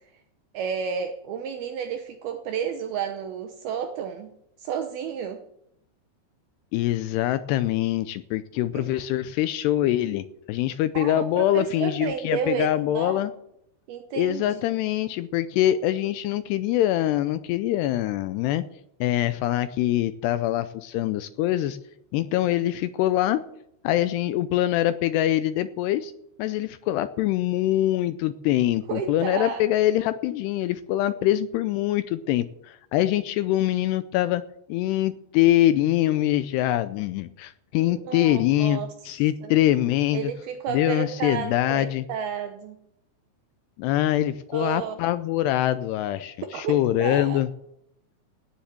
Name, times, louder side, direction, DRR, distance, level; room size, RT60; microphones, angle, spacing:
voice 1, 0.5-4.3 4.6-5.4 8.7-9.0 10.9-13.2 13.9-14.6 28.9-29.6 37.8-38.9 39.4-39.6 40.1-42.8 44.5-45.0 46.5-47.4, right 7 dB, 75° right, 6 dB, 2.4 m, -31 dB
voice 2, 6.7-13.3 14.1-18.6 19.0-21.8 22.1-23.4 23.8-26.1 26.4-34.4 34.7-38.8 39.1-40.3 40.7-42.0 43.8-47.5, left 13 dB, 80° left, 12 dB, 2.4 m, -24 dB
17.5 x 7.2 x 7.9 m, 0.78 s
omnidirectional pair, 5.3 m